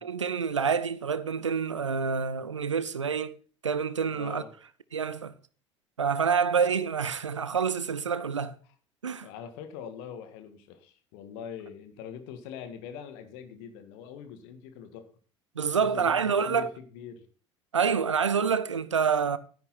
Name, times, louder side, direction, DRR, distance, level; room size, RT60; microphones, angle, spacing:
voice 1, 0.0-3.3 3.6-4.4 4.9-5.3 6.0-8.6 9.0-9.3 15.6-16.7 17.7-19.4, right 6 dB, 80° right, 0.7 m, -27 dB
voice 2, 4.1-4.5 9.2-15.1 15.7-17.2, left 8 dB, 60° left, 1.8 m, -43 dB
11.5 x 10.5 x 4.3 m
figure-of-eight pair, 60°, 15 cm